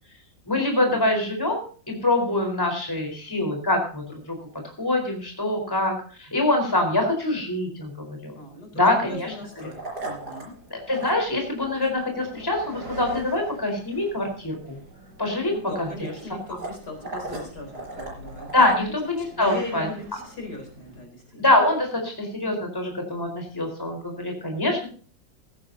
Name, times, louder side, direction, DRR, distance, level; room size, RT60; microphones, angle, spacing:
voice 1, 0.5-4.4 4.8-5.9 6.2-8.3 8.7-9.3 10.7-14.8 15.2-15.9 16.5-16.6 18.5-19.9 21.4-24.9, left 2 dB, 10° left, 3 dB, 4.3 m, -24 dB
voice 2, 8.3-10.6 15.5-18.5 19.3-21.4, left 2 dB, 55° left, 3 dB, 4.8 m, -38 dB
sound 1, 9.0-21.0, right 2 dB, 60° right, 5.5 m, -40 dB
16.0 x 15.0 x 2.8 m, 0.40 s
omnidirectional pair, 2.0 m